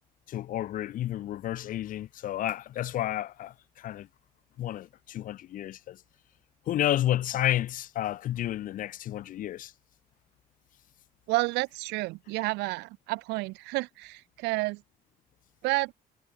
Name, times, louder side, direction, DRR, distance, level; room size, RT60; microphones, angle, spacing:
voice 1, 0.3-4.1 4.6-6.0 6.7-9.7, left 13 dB, 55° left, 0.5 m, -31 dB
voice 2, 11.3-14.8 15.6-15.9, right 23 dB, 90° right, 0.4 m, -30 dB
cardioid pair, 110°, 17 cm